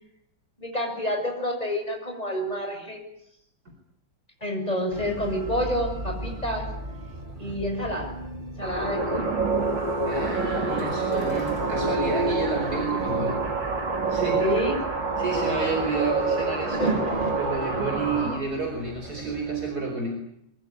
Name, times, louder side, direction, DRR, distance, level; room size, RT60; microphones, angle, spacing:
voice 1, 0.6-3.1 4.4-6.7 7.4-8.2 8.6-9.3 14.4-14.8 16.8-17.0 18.2-18.3, equal, 20° left, 2 dB, 7.2 m, -28 dB
sound 1, 4.9-19.7, right 2 dB, 25° right, 3.0 m, -37 dB
sound 2, 8.6-18.4, right 3 dB, 70° right, 5.3 m, -27 dB
voice 2, 10.0-13.5 14.1-14.5 15.2-20.3, right 3 dB, 50° right, 2 dB, 5.1 m, -30 dB
23.5 x 23.0 x 9.9 m, 0.77 s
omnidirectional pair, 2.0 m